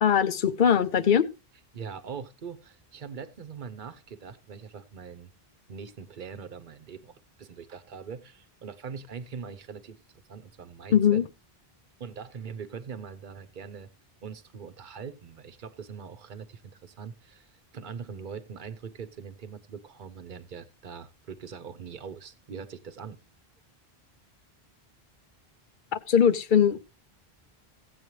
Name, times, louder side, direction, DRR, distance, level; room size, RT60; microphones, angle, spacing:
voice 1, 0.0-1.3 10.9-11.3 25.9-26.8, left 8 dB, 55° left, 0.8 m, -21 dB
voice 2, 1.7-5.3 5.7-10.0 10.3-11.2 12.0-13.9 14.2-23.2, right 6 dB, 55° right, 0.9 m, -42 dB
15.5 x 8.1 x 3.1 m
omnidirectional pair, 1.0 m